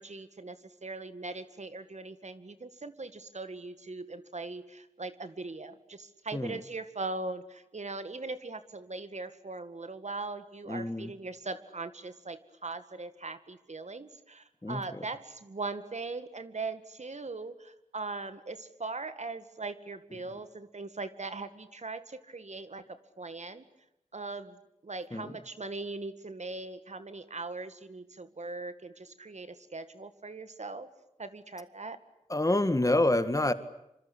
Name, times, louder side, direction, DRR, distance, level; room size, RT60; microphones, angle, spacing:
voice 1, 0.0-23.6 24.1-30.9 31.2-32.0, right 3 dB, 55° right, 11 dB, 2.1 m, -40 dB
voice 2, 10.7-11.1 14.6-15.0 25.1-25.4 32.3-33.5, left 1 dB, 25° left, 11 dB, 1.9 m, -28 dB
26.5 x 26.0 x 8.6 m, 0.84 s
wide cardioid pair, 75°, 14 cm